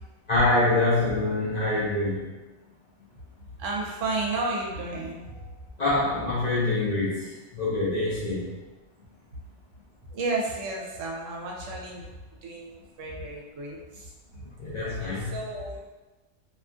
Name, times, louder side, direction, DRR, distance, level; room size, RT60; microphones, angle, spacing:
voice 1, 0.3-2.2 5.8-8.5 14.6-15.4, left 2 dB, 45° left, -9 dB, 0.5 m, -25 dB
voice 2, 3.6-5.6 10.1-12.1 12.4-14.1 14.9-15.8, right 2 dB, 85° right, -1 dB, 1.0 m, -32 dB
2.7 x 2.3 x 2.4 m, 1.1 s
omnidirectional pair, 1.3 m